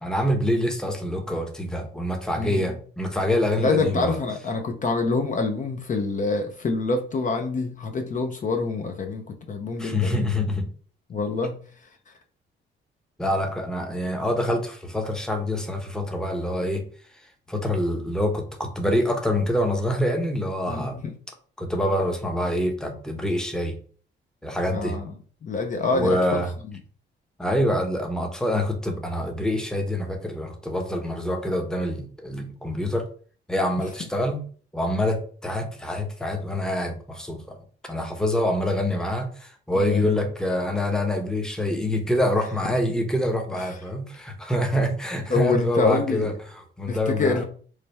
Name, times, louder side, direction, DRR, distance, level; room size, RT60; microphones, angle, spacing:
voice 1, 0.0-4.2 9.8-10.7 13.2-16.9 17.5-21.0 21.6-23.8 24.4-25.0 25.9-26.5 27.4-33.0 33.5-34.4 34.7-37.6 37.9-47.4, left 1 dB, 5° left, 3 dB, 0.7 m, -26 dB
voice 2, 2.4-2.8 3.6-10.3 11.1-11.6 20.7-21.1 24.7-25.1 25.4-26.4 39.7-40.2 43.6-43.7 45.3-46.3 46.9-47.4, left 3 dB, 40° left, 5 dB, 0.5 m, -26 dB
3.2 x 2.2 x 4.1 m, 0.43 s
cardioid pair, 90°, 20 cm